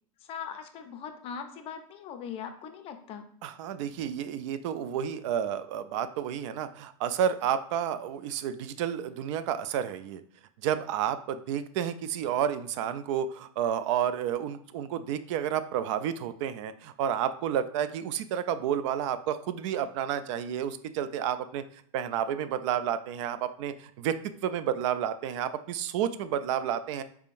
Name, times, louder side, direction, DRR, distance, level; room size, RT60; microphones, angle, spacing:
voice 1, 0.2-3.2, left 7 dB, 30° left, 8 dB, 0.5 m, -40 dB
voice 2, 3.4-10.2 10.6-21.6 21.9-24.2 24.4-27.0, right 9 dB, 55° right, 12 dB, 0.4 m, -30 dB
4.5 x 3.5 x 2.5 m, 0.62 s
supercardioid pair, 130°, 18 cm